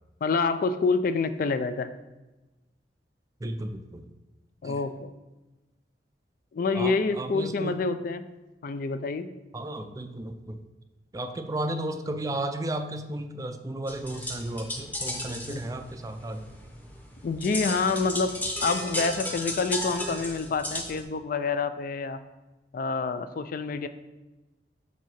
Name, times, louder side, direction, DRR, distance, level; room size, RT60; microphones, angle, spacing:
voice 1, 0.2-1.9 4.6-5.1 6.5-8.2 8.6-9.3 15.5-15.6 17.2-18.3 18.6-22.2 22.7-23.9, left 4 dB, 50° left, 11 dB, 0.4 m, -27 dB
voice 2, 3.4-4.0 4.6-4.8 6.7-7.8 9.5-10.6 11.1-16.5, right 1 dB, 20° right, 8 dB, 0.4 m, -34 dB
sound 1, 13.9-21.0, left 1 dB, 10° left, 0.8 m, -35 dB
7.4 x 2.7 x 5.8 m, 1.1 s
head